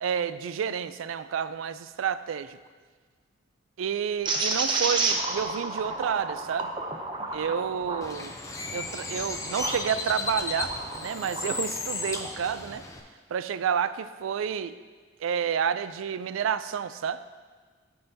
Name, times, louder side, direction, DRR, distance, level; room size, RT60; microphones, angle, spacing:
voice 1, 0.0-2.6 3.8-6.7 7.3-8.3 8.7-12.8 13.3-14.7 15.2-17.2, right 7 dB, 90° right, 14 dB, 0.3 m, -30 dB
sound 1, 4.3-9.8 10.3-11.5, right 3 dB, 25° right, 0.6 m, -31 dB
Bird, 8.0-13.0, left 3 dB, 15° left, 0.5 m, -34 dB
13.5 x 5.6 x 2.7 m, 1.5 s
head